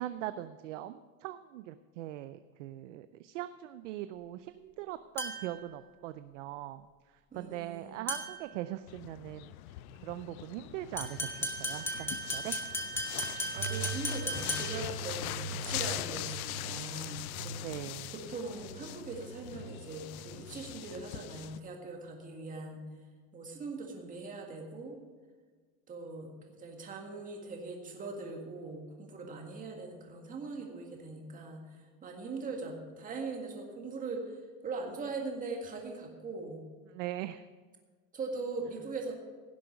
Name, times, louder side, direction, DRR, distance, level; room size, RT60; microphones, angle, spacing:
voice 1, 0.0-6.9 7.4-9.5 10.0-12.6 17.6-18.1 36.9-37.4, right 14 dB, 50° right, 12 dB, 0.5 m, -41 dB
sound 1, 5.2-5.6 8.1-8.5 11.0-14.9, equal, 5° left, 0.8 m, -36 dB
voice 2, 7.3-8.1 13.5-17.5 18.1-22.8 23.3-25.0 25.9-36.6 38.1-39.1, right 3 dB, 15° right, 1 dB, 1.8 m, -41 dB
sound 2, 8.9-21.6, left 15 dB, 60° left, 0.6 m, -42 dB
sound 3, 13.5-20.4, right 4 dB, 70° right, 1.8 m, -43 dB
16.5 x 7.6 x 5.9 m, 1.5 s
supercardioid pair, 160°, 50 cm